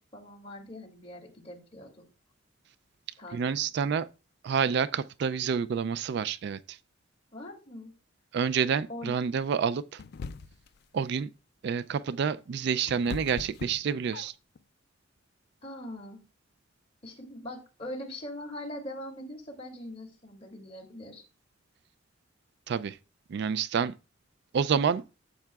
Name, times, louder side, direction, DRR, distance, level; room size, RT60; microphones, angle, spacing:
voice 1, 0.0-1.9 3.2-3.9 7.3-7.9 8.9-9.1 15.6-16.2 17.0-21.2, left 1 dB, 30° left, 2.6 m, -42 dB
voice 2, 3.3-4.1 4.4-6.8 8.3-10.0 10.9-11.3 11.6-14.3 22.7-23.0 23.3-23.9 24.5-25.0, right 6 dB, 60° right, 0.3 m, -28 dB
sound 1, 10.0-10.8 12.3-14.6, left 4 dB, 60° left, 0.4 m, -40 dB
12.0 x 7.7 x 2.3 m
head